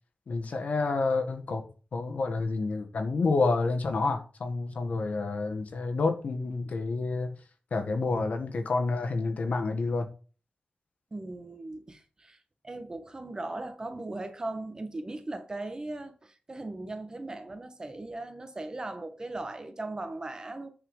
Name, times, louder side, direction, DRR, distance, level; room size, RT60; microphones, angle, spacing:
voice 1, 0.3-1.6 1.9-7.4 7.7-10.1, left 3 dB, 65° left, 1.5 m, -29 dB
voice 2, 11.1-12.4 12.6-20.7, right 2 dB, 30° right, 1.4 m, -38 dB
9.9 x 4.8 x 5.5 m
wide cardioid pair, 120°, 3 cm